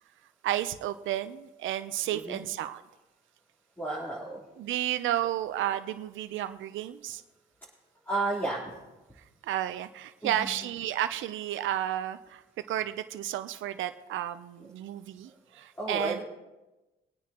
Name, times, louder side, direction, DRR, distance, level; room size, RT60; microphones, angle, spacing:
voice 1, 0.4-2.8 4.6-7.2 9.4-12.4 12.7-16.2, right 12 dB, 75° right, 10 dB, 0.7 m, -32 dB
voice 2, 3.8-4.4 8.1-8.7 10.2-10.5 15.8-16.2, right 2 dB, 10° left, -8 dB, 3.8 m, -32 dB
24.5 x 9.4 x 3.0 m, 1.1 s
cardioid pair, 90°, 20 cm